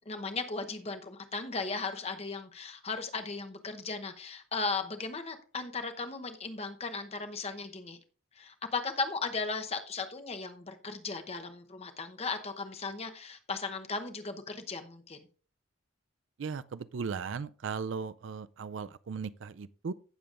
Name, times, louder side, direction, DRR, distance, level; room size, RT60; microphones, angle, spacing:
voice 1, 0.1-8.0 8.3-15.3, left 4 dB, 30° left, 0.9 m, -36 dB
voice 2, 16.4-19.9, right 5 dB, 65° right, 0.4 m, -37 dB
16.0 x 6.9 x 2.5 m
head